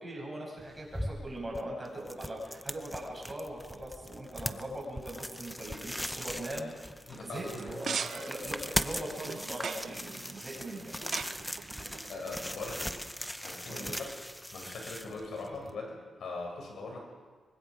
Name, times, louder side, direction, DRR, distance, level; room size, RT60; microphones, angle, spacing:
voice 1, 0.0-6.7 7.1-10.9 13.6-14.0, right 1 dB, 15° right, -2 dB, 7.7 m, -40 dB
sound 1, 0.6-15.7, equal, 5° left, 0.7 m, -40 dB
voice 2, 7.1-8.1 12.1-13.0 13.4-14.2 14.5-17.0, left 3 dB, 70° left, 0 dB, 6.7 m, -41 dB
sound 2, 7.5-13.0, right 6 dB, 55° right, 0.6 m, -41 dB
25.0 x 24.0 x 5.0 m, 1.5 s
wide cardioid pair, 145°, 0 cm